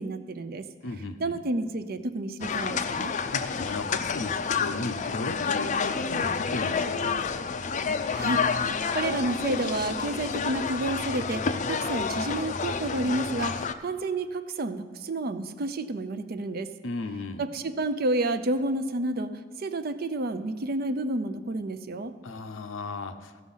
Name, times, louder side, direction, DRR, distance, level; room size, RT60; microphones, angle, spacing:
voice 1, 0.0-0.6 1.2-3.1 8.1-16.7 17.4-19.3 19.6-22.1, right 2 dB, 50° right, 11 dB, 0.5 m, -30 dB
voice 2, 0.8-1.4 3.3-7.4 16.8-17.5 22.2-23.3, left 3 dB, 90° left, 8 dB, 0.7 m, -36 dB
sound 1, 2.4-13.7, left 5 dB, 40° left, 0.4 m, -29 dB
14.5 x 6.2 x 5.6 m, 1.4 s
head